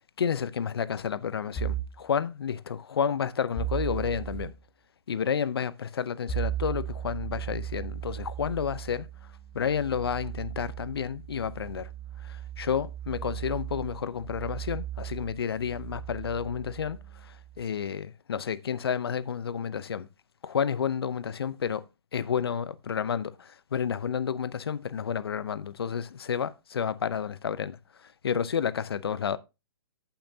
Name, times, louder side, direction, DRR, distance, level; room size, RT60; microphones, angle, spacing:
voice 1, 0.2-4.5 5.1-9.1 9.5-11.9 12.2-20.1 20.4-21.9 22.1-29.4, left 7 dB, 75° left, 0.7 m, -31 dB
sound 1, 1.6-2.0 3.6-4.5 6.3-17.6, right 10 dB, 15° left, 3.6 m, -37 dB
14.0 x 5.8 x 2.8 m
hypercardioid pair, 140°, 13 cm